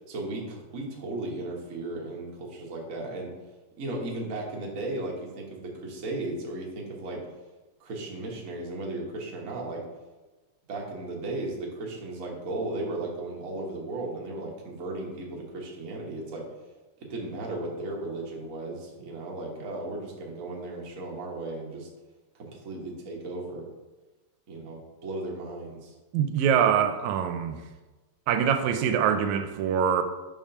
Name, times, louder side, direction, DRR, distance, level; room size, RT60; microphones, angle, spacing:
voice 1, 0.1-3.3 3.8-7.2 7.8-9.8 10.7-16.4 17.0-21.9 22.3-23.6 24.5-25.9, right 2 dB, 65° right, -2 dB, 0.8 m, -35 dB
voice 2, 26.1-27.6 28.3-30.0, right 8 dB, 80° right, 8 dB, 1.8 m, -24 dB
5.2 x 3.6 x 5.5 m, 1.2 s
omnidirectional pair, 3.4 m